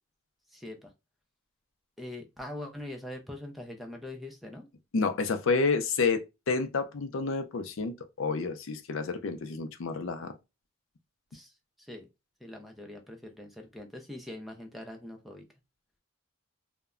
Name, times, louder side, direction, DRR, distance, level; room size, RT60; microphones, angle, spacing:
voice 1, 0.5-0.9 2.0-4.7 11.3-11.5 11.8-12.1 12.4-15.4, left 1 dB, ahead, 0.4 m, -42 dB
voice 2, 4.9-10.3, left 4 dB, 65° left, 0.4 m, -29 dB
2.1 x 2.1 x 3.5 m
head